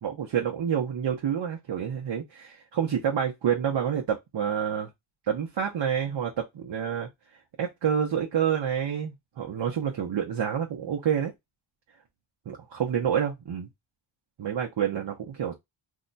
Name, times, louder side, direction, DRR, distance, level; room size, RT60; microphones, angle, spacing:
voice 1, 0.0-4.9 5.3-7.1 7.6-11.3 12.5-13.7 14.4-15.6, right 8 dB, 60° right, 0.8 m, -28 dB
2.7 x 2.2 x 3.9 m
wide cardioid pair, 145°, 48 cm